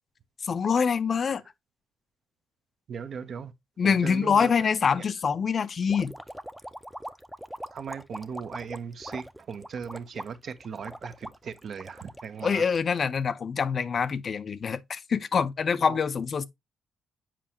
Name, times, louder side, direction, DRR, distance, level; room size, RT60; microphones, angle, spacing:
voice 1, 0.4-1.4 3.8-6.1 12.4-16.4, left 6 dB, 45° left, 0.5 m, -25 dB
voice 2, 2.9-3.5 3.8-4.7 5.0-5.1 7.7-12.7 15.8-16.0, right 6 dB, 55° right, 0.7 m, -38 dB
sound 1, 5.9-13.2, equal, ahead, 0.5 m, -42 dB
7.5 x 5.0 x 2.8 m
cardioid pair, 95°, 0 cm